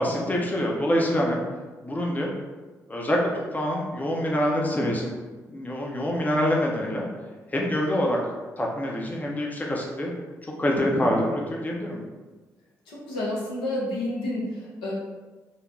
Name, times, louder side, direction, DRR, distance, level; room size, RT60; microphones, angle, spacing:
voice 1, 0.0-1.4 1.8-2.3 2.9-3.2 3.5-5.1 5.5-7.0 7.5-8.2 8.6-10.1 10.6-12.0, equal, 20° left, -2 dB, 0.6 m, -25 dB
voice 2, 12.9-14.9, left 1 dB, 70° left, -5 dB, 0.7 m, -30 dB
3.1 x 2.1 x 2.5 m, 1.3 s
hypercardioid pair, 40°, 8 cm